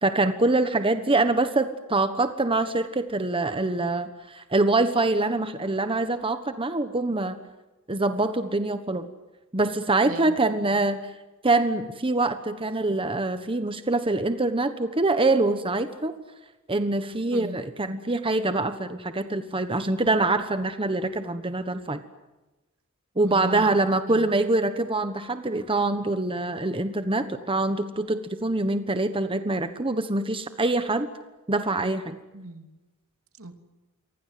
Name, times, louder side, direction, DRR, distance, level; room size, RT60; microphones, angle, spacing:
voice 1, 0.0-7.4 7.9-9.1 9.5-11.0 11.4-16.1 16.7-22.0 23.2-31.1 31.5-32.2, right 2 dB, 25° right, 9 dB, 1.3 m, -24 dB
voice 2, 10.0-10.8 17.3-17.6 23.2-23.7 24.1-24.3 32.3-32.7 33.4-33.5, right 2 dB, 75° right, 7 dB, 2.9 m, -39 dB
29.0 x 24.5 x 7.8 m, 1.1 s
head